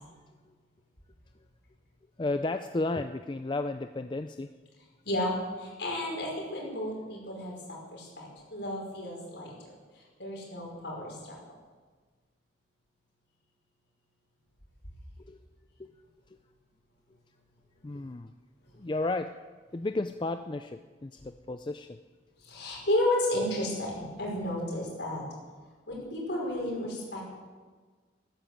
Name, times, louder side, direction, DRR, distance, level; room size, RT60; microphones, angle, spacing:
voice 1, 2.2-4.5 15.2-15.4 15.8-15.9 17.8-18.3 18.8-19.3 19.7-22.0, left 2 dB, 25° left, 8 dB, 0.4 m, -33 dB
voice 2, 5.1-9.5 9.9-11.4 22.4-25.2 25.9-27.2, left 1 dB, 60° left, -2 dB, 5.4 m, -32 dB
13.5 x 13.0 x 7.7 m, 1.4 s
head